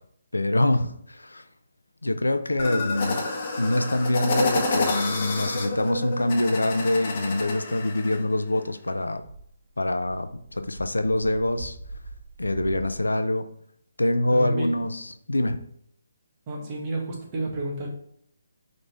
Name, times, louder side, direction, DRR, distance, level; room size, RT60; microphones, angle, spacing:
voice 1, 0.3-1.4 2.0-3.2 3.6-9.2 9.8-11.8 12.4-13.5 14.0-15.6, left 1 dB, 85° left, 9 dB, 0.6 m, -25 dB
sound 1, 2.6-8.2, left 3 dB, 40° left, 1.3 m, -29 dB
sound 2, 9.2-13.0, right 2 dB, 45° right, 1.6 m, -43 dB
voice 2, 14.3-14.8 16.5-17.9, right 2 dB, 30° right, -2 dB, 1.7 m, -31 dB
5.3 x 3.8 x 4.6 m, 0.67 s
figure-of-eight pair, 145°, 0 cm